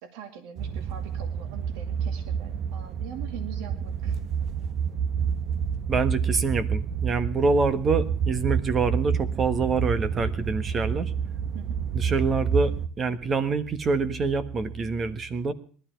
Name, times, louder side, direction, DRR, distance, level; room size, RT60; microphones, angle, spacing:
voice 1, 0.0-4.2 11.5-11.8, right 8 dB, 80° right, 8 dB, 2.4 m, -43 dB
sound 1, 0.6-12.9, right 7 dB, 45° right, 0.9 m, -29 dB
voice 2, 5.9-11.1 11.9-15.5, right 4 dB, 30° right, 13 dB, 1.4 m, -26 dB
19.5 x 13.0 x 4.5 m, 0.43 s
cardioid pair, 135°, 0 cm